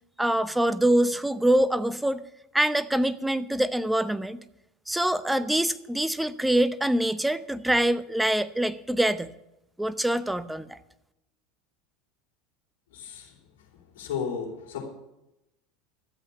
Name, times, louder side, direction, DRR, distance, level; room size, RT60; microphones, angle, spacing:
voice 1, 0.2-2.2 2.5-4.4 4.9-9.3 9.8-10.8, right 1 dB, 5° right, 14 dB, 0.8 m, -24 dB
voice 2, 12.9-14.9, left 6 dB, 70° left, -1 dB, 3.8 m, -35 dB
13.0 x 8.2 x 8.4 m, 0.88 s
hypercardioid pair, 80°, 0 cm